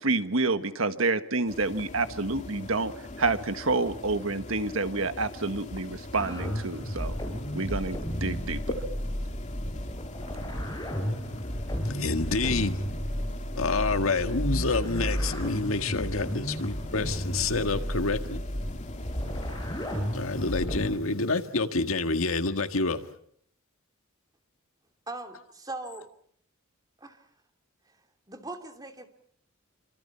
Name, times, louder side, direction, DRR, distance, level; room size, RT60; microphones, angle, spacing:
voice 1, 0.0-2.9 3.2-7.1 7.5-8.6, right 3 dB, 75° right, 1.6 m, -28 dB
sound 1, 1.5-20.7, left 1 dB, 35° left, 2.4 m, -41 dB
sound 2, 6.1-21.0, equal, 20° left, 5.2 m, -33 dB
voice 2, 11.9-12.9 13.6-18.4 20.1-23.1, left 3 dB, 85° left, 1.8 m, -28 dB
voice 3, 25.1-26.1 27.0-27.2 27.9-28.0 28.3-29.1, right 2 dB, 20° right, 2.8 m, -40 dB
28.5 x 26.0 x 5.8 m
head